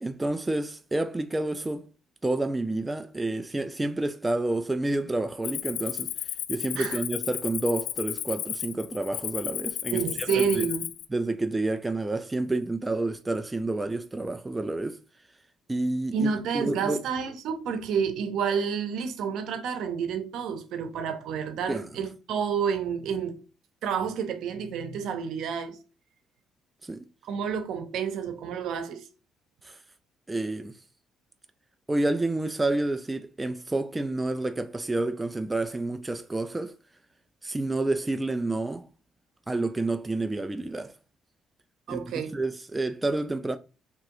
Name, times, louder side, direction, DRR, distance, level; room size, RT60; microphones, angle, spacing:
voice 1, 0.0-1.9 2.2-6.1 6.5-10.0 10.3-10.7 11.1-15.0 15.7-17.0 21.7-21.9 26.8-27.0 29.6-29.8 30.3-30.7 31.9-36.7 37.4-38.8 39.5-40.9 41.9-43.6, right 2 dB, 10° right, 0.3 m, -29 dB
Cricket, 5.4-11.0, left 12 dB, 80° left, 0.3 m, -33 dB
voice 2, 9.9-10.9 16.1-23.4 23.8-25.8 27.2-29.1 41.9-42.3, right 6 dB, 70° right, 0.8 m, -29 dB
3.6 x 3.0 x 4.6 m
cardioid pair, 140°, 0 cm